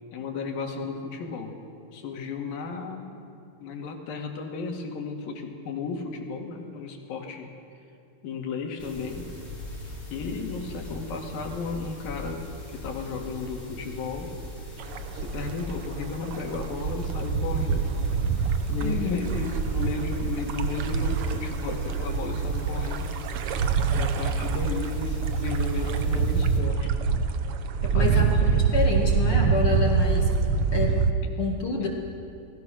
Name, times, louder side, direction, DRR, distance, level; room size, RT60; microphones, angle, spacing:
voice 1, 0.1-1.6 1.9-3.3 3.6-7.5 8.2-9.3 10.1-12.5 12.7-14.4 15.1-17.9 18.7-23.1 23.9-26.9 27.8-28.6 31.8-31.9, left 4 dB, 85° left, 3 dB, 3.9 m, -34 dB
sound 1, 8.8-26.6, left 1 dB, 15° left, 5.0 m, -40 dB
sound 2, 14.8-31.1, right 5 dB, 90° right, 1.2 m, -25 dB
voice 2, 18.8-19.3 27.9-28.5 28.7-30.3 30.7-31.0 31.4-31.9, left 4 dB, 45° left, 0 dB, 2.3 m, -28 dB
29.0 x 20.0 x 6.4 m, 2.6 s
omnidirectional pair, 4.0 m